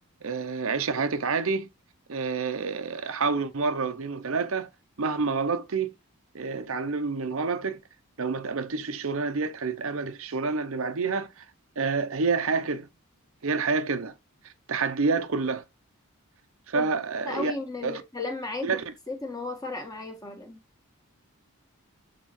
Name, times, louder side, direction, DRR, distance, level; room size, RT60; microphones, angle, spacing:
voice 1, 0.2-1.7 2.1-4.7 5.0-5.9 6.3-7.8 8.2-11.4 11.8-12.9 13.4-14.1 14.4-15.6 16.7-17.5 17.8-18.0 18.6-18.8, right 4 dB, 70° right, 0.7 m, -28 dB
voice 2, 17.2-18.7 19.1-20.6, left 3 dB, 15° left, 1.4 m, -34 dB
7.5 x 4.0 x 3.1 m
head